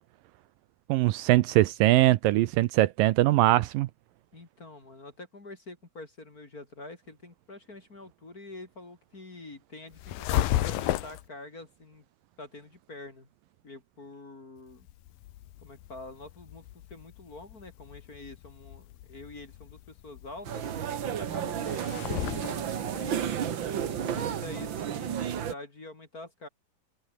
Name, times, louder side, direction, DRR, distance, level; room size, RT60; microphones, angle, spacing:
voice 1, 0.9-3.9, right 16 dB, 80° right, 2.3 m, -22 dB
voice 2, 4.3-12.0 12.4-13.3 13.6-14.9 15.6-23.3 23.9-26.5, left 2 dB, 25° left, 3.0 m, -46 dB
sound 1, 9.9-11.3 14.7-24.8, left 14 dB, 75° left, 2.8 m, -35 dB
sound 2, 20.4-25.5, right 9 dB, 60° right, 1.2 m, -32 dB
omnidirectional pair, 4.2 m